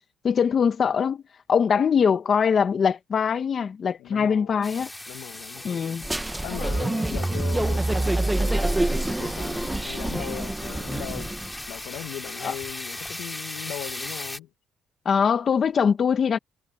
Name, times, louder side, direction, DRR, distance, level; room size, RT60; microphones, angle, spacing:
voice 1, 0.2-1.2 1.5-4.9 5.6-6.0 12.4-12.5 15.0-16.4, left 6 dB, 45° left, 1.1 m, -22 dB
voice 2, 4.0-4.7 5.1-6.0 6.4-11.4 11.7-14.5, left 14 dB, 90° left, 1.4 m, -39 dB
sound 1, 4.6-14.4, left 1 dB, 10° left, 2.6 m, -38 dB
sound 2, 6.0-11.6, right 2 dB, 10° right, 1.2 m, -26 dB
cardioid pair, 105°, 0 cm